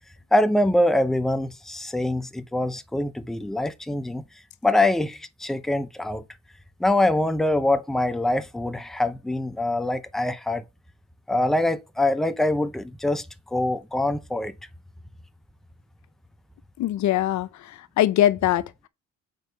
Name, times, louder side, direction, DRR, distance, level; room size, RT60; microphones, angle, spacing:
voice 1, 0.3-4.2 4.6-6.2 6.8-10.6 11.3-13.3 13.5-14.5, left 1 dB, ahead, 0.6 m, -24 dB
voice 2, 16.8-18.9, left 12 dB, 70° left, 0.6 m, -23 dB
6.8 x 4.5 x 3.9 m
cardioid pair, 90°, 30 cm